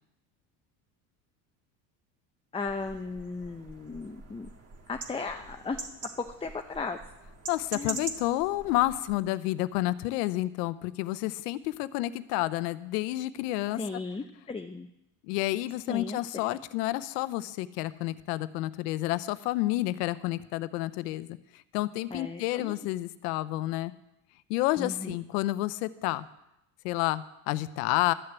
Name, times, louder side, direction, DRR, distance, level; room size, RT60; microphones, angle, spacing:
voice 1, 2.5-4.5 4.9-5.8 6.4-7.0 7.7-8.1 13.8-14.9 15.9-16.2 22.1-22.7 24.8-25.2, left 4 dB, 10° left, 5 dB, 0.7 m, -36 dB
sound 1, 2.7-9.2, right 3 dB, 30° right, 1.9 m, -43 dB
voice 2, 7.5-13.8 15.3-23.9 24.5-26.3 26.8-28.1, left 17 dB, 90° left, 15 dB, 0.8 m, -30 dB
13.0 x 6.8 x 8.1 m, 0.85 s
supercardioid pair, 95°, 46 cm